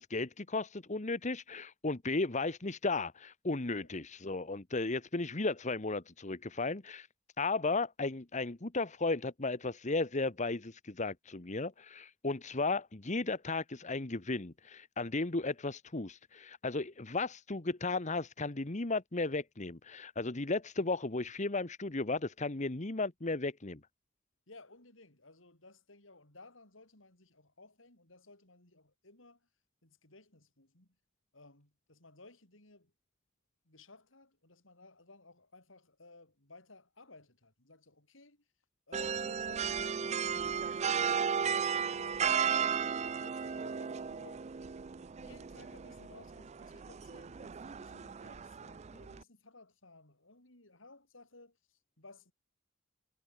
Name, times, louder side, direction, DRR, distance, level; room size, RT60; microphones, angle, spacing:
voice 1, 0.0-7.1 7.4-23.8, left 3 dB, 40° left, 1.3 m, -35 dB
voice 2, 24.5-29.5 29.8-30.9 31.3-32.9 33.6-38.4 38.9-44.5 45.2-52.3, left 2 dB, 85° left, 6.6 m, -58 dB
sound 1, 38.9-49.2, right 7 dB, 35° right, 0.4 m, -35 dB
head